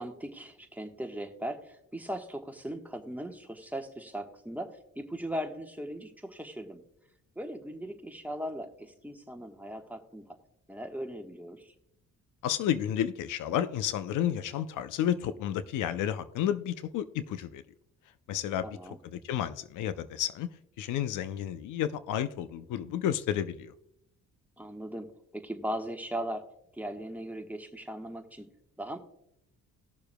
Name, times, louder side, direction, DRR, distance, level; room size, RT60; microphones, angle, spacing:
voice 1, 0.0-4.7 4.9-6.8 7.4-10.3 10.7-11.7 18.6-19.0 24.6-25.1 25.3-26.4 26.7-28.5 28.8-29.0, right 1 dB, 5° right, 4 dB, 1.2 m, -38 dB
voice 2, 12.4-17.6 18.3-20.5 20.8-23.7, left 10 dB, 85° left, 13 dB, 0.6 m, -31 dB
19.5 x 6.8 x 2.2 m, 0.78 s
cardioid pair, 90°, 30 cm